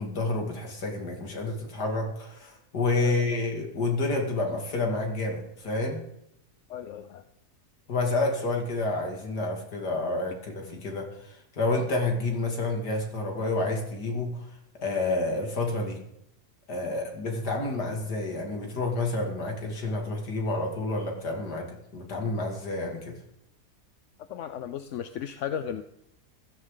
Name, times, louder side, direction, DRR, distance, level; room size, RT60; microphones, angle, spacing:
voice 1, 0.0-6.0 7.9-14.5 14.8-16.0 16.7-23.2, left 2 dB, 90° left, 2 dB, 3.0 m, -29 dB
voice 2, 6.7-7.2 24.3-25.8, left 9 dB, 60° left, 10 dB, 0.8 m, -35 dB
15.5 x 14.5 x 3.9 m, 0.80 s
omnidirectional pair, 1.7 m